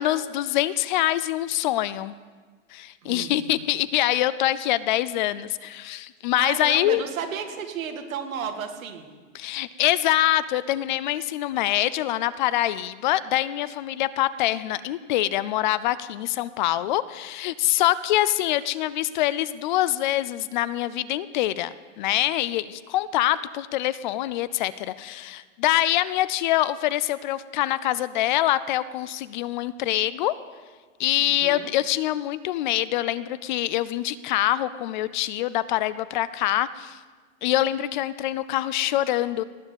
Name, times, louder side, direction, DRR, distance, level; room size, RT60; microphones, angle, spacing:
voice 1, 0.0-2.2 2.7-7.0 9.3-30.3 31.0-37.0 37.4-39.4, left 14 dB, 40° left, 17 dB, 0.4 m, -25 dB
voice 2, 3.0-3.6 6.4-9.1 31.2-31.7, right 7 dB, 85° right, 5 dB, 2.2 m, -33 dB
18.5 x 7.2 x 8.2 m, 1.4 s
supercardioid pair, 145°, 40 cm